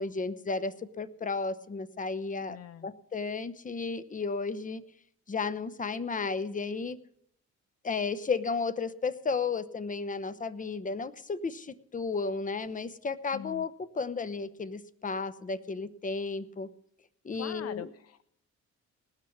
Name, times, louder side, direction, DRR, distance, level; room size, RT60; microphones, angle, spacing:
voice 1, 0.0-2.6 2.8-4.8 5.3-7.0 7.8-16.7 17.2-17.9, left 4 dB, 25° left, 15 dB, 0.9 m, -33 dB
voice 2, 2.5-2.9 13.3-13.7 17.4-18.2, left 11 dB, 55° left, 15 dB, 0.5 m, -43 dB
19.0 x 6.4 x 7.3 m, 0.71 s
cardioid pair, 90°, 30 cm